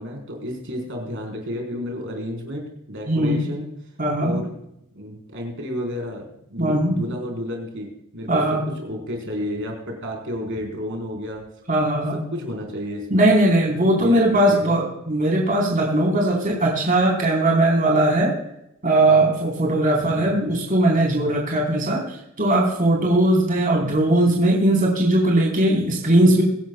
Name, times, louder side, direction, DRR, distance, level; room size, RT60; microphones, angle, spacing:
voice 1, 0.0-3.7 4.2-4.5 4.9-6.2 6.5-11.4 12.1-13.3 13.9-14.7 19.0-19.3 20.1-20.4 23.8-23.9, left 1 dB, 65° right, 1 dB, 4.5 m, -31 dB
voice 2, 3.1-3.5 4.0-4.3 6.6-7.0 8.3-8.6 11.7-12.2 13.1-18.3 18.8-22.0 22.4-26.4, right 1 dB, 40° right, -1 dB, 4.1 m, -19 dB
24.0 x 11.5 x 2.3 m, 0.80 s
head